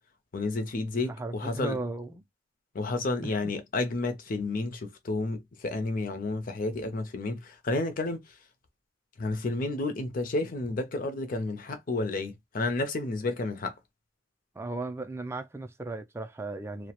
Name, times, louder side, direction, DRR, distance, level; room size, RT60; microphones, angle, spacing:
voice 1, 0.3-1.8 2.7-8.2 9.2-13.7, left 2 dB, 45° left, 0.5 m, -31 dB
voice 2, 1.0-2.2 3.2-3.5 14.6-16.9, right 2 dB, 15° right, 0.3 m, -36 dB
2.2 x 2.1 x 2.8 m
head